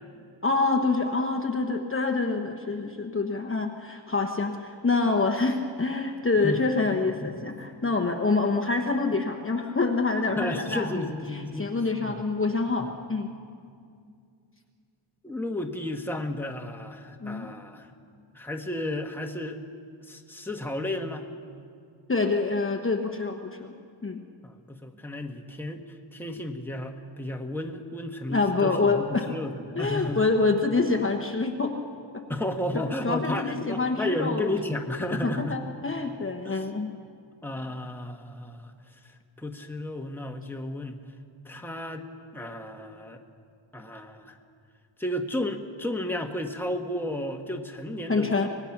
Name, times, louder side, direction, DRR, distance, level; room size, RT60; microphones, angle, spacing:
voice 1, 0.4-13.3 17.2-17.5 22.1-23.7 24.0-24.2 28.3-29.3 29.7-31.7 32.1-32.2 32.7-34.5 35.2-36.9 48.1-48.5, left 3 dB, 25° left, 3 dB, 1.1 m, -26 dB
voice 2, 10.4-11.7 12.0-12.2 12.8-12.9 15.2-17.9 18.3-19.6 20.1-21.2 24.4-25.8 26.1-30.2 32.3-35.6 36.4-36.6 37.4-38.7 39.4-41.0 41.4-42.0 42.3-43.2 43.7-44.4 45.0-48.5, left 1 dB, 5° left, 3 dB, 1.3 m, -33 dB
25.0 x 20.5 x 6.0 m, 2.3 s
wide cardioid pair, 150°, 49 cm